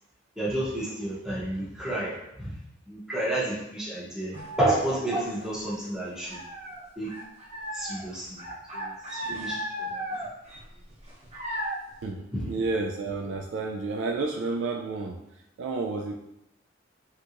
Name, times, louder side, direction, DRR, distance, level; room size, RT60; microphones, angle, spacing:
voice 1, 0.4-2.1 2.4-2.5 2.9-6.4 7.0-7.1 7.7-8.4 8.7-9.6 9.9-10.0 12.3-12.4, right 1 dB, 5° right, -7 dB, 0.7 m, -30 dB
sound 1, 4.3-5.9 6.2-11.9, equal, 35° right, 0.9 m, -36 dB
voice 2, 12.0-16.1, right 3 dB, 70° right, 1 dB, 0.3 m, -31 dB
3.7 x 2.8 x 2.5 m, 0.85 s
head